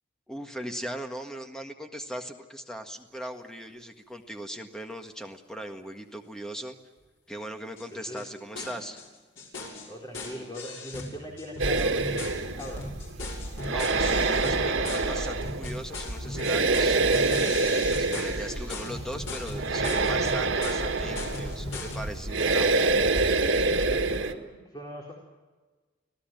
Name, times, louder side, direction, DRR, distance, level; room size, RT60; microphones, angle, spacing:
voice 1, 0.3-6.7 7.3-9.0 13.6-17.3 17.9-23.1, right 1 dB, 5° left, 4 dB, 1.7 m, -39 dB
sound 1, 7.8-7.9 8.2-8.3 8.6-9.1 9.4-22.1, left 2 dB, 85° left, 6.4 m, -39 dB
voice 2, 7.9-8.3 9.9-12.9 18.0-18.3 23.4-25.1, equal, 20° left, -1 dB, 3.9 m, -41 dB
sound 2, 11.6-24.3, right 3 dB, 90° right, 1.7 m, -26 dB
25.5 x 17.0 x 9.2 m, 1.3 s
head